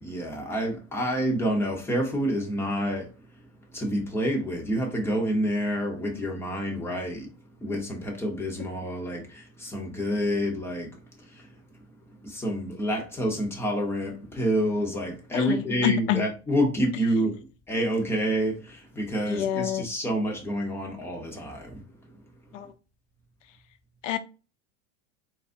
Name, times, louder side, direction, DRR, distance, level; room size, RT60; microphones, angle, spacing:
voice 1, 0.0-3.1 3.7-7.3 7.6-10.9 11.3-11.5 12.2-17.4 17.7-21.8, equal, 5° left, 1.0 m, -28 dB
voice 2, 15.3-16.2 19.3-19.9 22.5-22.7 24.0-24.2, left 11 dB, 80° left, 0.7 m, -27 dB
4.1 x 4.0 x 2.6 m
supercardioid pair, 150°, 37 cm